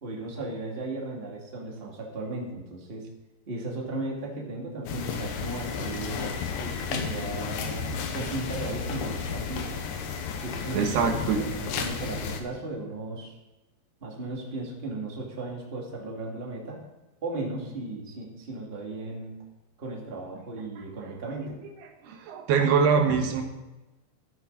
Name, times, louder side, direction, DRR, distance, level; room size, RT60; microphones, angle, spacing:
voice 1, 0.0-3.1 3.5-6.3 6.6-9.8 10.4-11.0 11.4-13.4 14.0-16.8 17.2-19.4 19.8-21.6, right 2 dB, 25° right, -2 dB, 1.4 m, -36 dB
sound 1, 4.9-12.4, left 6 dB, 70° left, 2.2 m, -33 dB
voice 2, 10.7-11.4 22.0-23.4, right 6 dB, 70° right, 4 dB, 3.1 m, -23 dB
13.5 x 10.5 x 4.0 m, 1.1 s
omnidirectional pair, 5.1 m